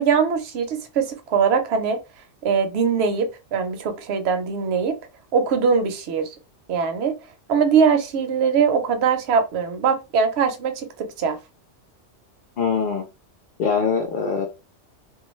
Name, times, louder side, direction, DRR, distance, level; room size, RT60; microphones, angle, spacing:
voice 1, 0.0-2.0 2.4-5.0 5.3-6.4 6.7-7.1 7.5-11.4, right 6 dB, 65° right, 0.8 m, -21 dB
voice 2, 12.6-13.0 13.6-14.5, left 6 dB, 60° left, 0.6 m, -22 dB
2.3 x 2.2 x 3.0 m
omnidirectional pair, 1.3 m